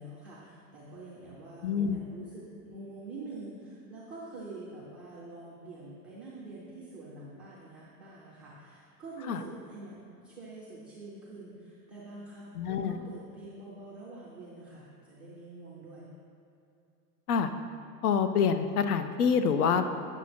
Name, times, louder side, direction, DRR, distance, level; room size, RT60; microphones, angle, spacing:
voice 1, 0.0-12.5 12.9-16.1, right 2 dB, 5° right, -11 dB, 0.4 m, -46 dB
voice 2, 1.6-2.0 9.3-9.4 12.6-13.0 17.3-17.5 18.0-19.9, left 6 dB, 70° left, 9 dB, 0.7 m, -26 dB
9.1 x 6.2 x 4.3 m, 2.6 s
supercardioid pair, 150°, 47 cm